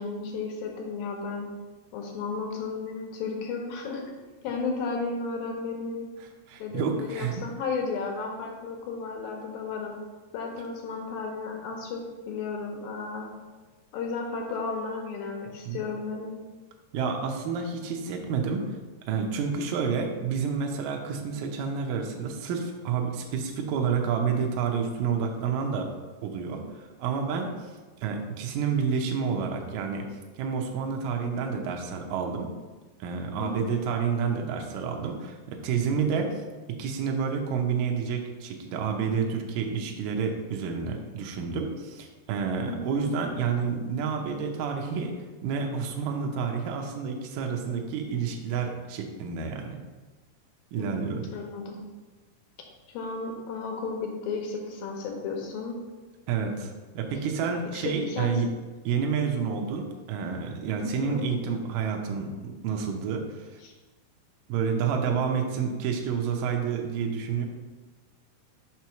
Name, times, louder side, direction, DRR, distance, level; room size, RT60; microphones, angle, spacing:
voice 1, 0.0-1.5 1.9-6.1 6.6-9.9 10.3-12.0 12.3-13.3 13.9-16.3 33.4-33.8 42.7-43.0 50.8-51.8 52.9-55.8 57.7-58.3 60.8-61.3 63.6-63.7, left 4 dB, 75° left, 1 dB, 2.3 m, -34 dB
voice 2, 6.5-7.4 15.7-15.8 16.9-18.7 19.1-25.9 26.2-27.7 28.0-30.1 30.4-32.5 33.0-36.3 36.8-45.1 45.4-49.8 50.7-51.2 56.3-58.5 58.9-63.6 64.5-67.5, right 6 dB, 85° right, 2 dB, 1.9 m, -29 dB
6.1 x 3.0 x 5.7 m, 1.3 s
omnidirectional pair, 4.7 m